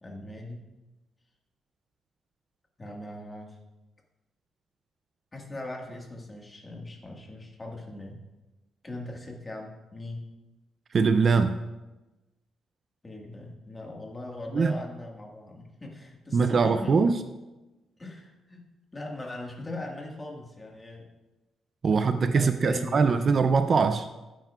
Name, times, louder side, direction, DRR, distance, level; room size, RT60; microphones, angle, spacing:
voice 1, 0.0-0.6 2.8-3.6 5.3-8.2 8.8-10.3 13.0-17.1 18.0-18.6 18.9-21.1 22.3-23.5, left 2 dB, 20° left, 0 dB, 1.7 m, -40 dB
voice 2, 10.9-11.6 14.5-14.7 16.3-17.2 21.8-24.1, right 5 dB, 40° right, 9 dB, 0.4 m, -22 dB
14.5 x 9.1 x 2.4 m, 1.1 s
cardioid pair, 135°, 0 cm